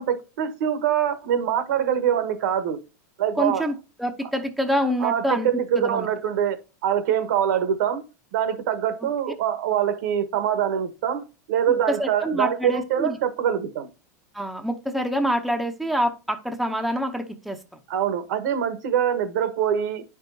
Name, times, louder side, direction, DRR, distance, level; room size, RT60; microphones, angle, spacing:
voice 1, 0.0-2.8 3.2-3.7 5.0-8.0 8.3-11.2 11.5-13.9 17.9-20.0, right 9 dB, 70° right, 1.3 m, -24 dB
voice 2, 3.4-3.7 4.0-5.5 5.7-6.1 11.9-13.2 14.3-17.6, equal, ahead, 0.7 m, -26 dB
9.2 x 5.3 x 2.7 m
supercardioid pair, 140°, 10 cm